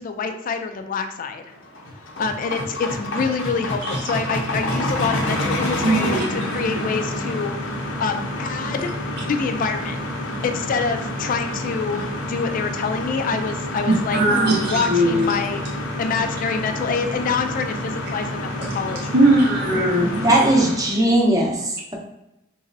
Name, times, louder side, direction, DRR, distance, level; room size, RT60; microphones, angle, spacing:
voice 1, 0.0-1.4 2.2-7.5 8.0-8.9 9.3-10.0 10.4-14.2 14.6-15.6 16.0-18.5 18.7-19.1, left 5 dB, 45° left, 7 dB, 0.3 m, -26 dB
sound 1, 1.5-20.9, left 1 dB, 80° left, 0.7 m, -28 dB
voice 2, 5.8-6.2 13.9-15.2 19.1-20.4, right 1 dB, 60° right, -3 dB, 0.6 m, -19 dB
voice 3, 20.2-21.9, right 1 dB, 20° right, -1 dB, 0.7 m, -18 dB
3.9 x 3.1 x 2.6 m, 0.88 s
head